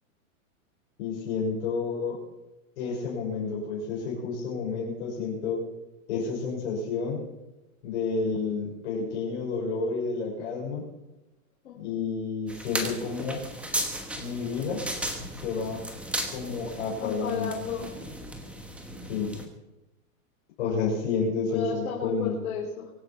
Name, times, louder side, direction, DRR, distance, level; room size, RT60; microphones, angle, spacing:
voice 1, 1.0-2.2 2.8-5.6 6.1-7.2 7.8-10.8 11.7-13.4 14.2-14.9 15.3-15.9 16.3-17.5 19.1-19.4 20.6-22.3, left 4 dB, 50° left, -4 dB, 5.9 m, -30 dB
voice 2, 11.6-12.1 17.0-17.9 21.4-23.0, left 6 dB, 70° left, -2 dB, 4.1 m, -34 dB
sound 1, 12.5-19.5, right 1 dB, 5° right, 1.2 m, -36 dB
24.0 x 9.2 x 6.0 m, 1.0 s
supercardioid pair, 170°, 43 cm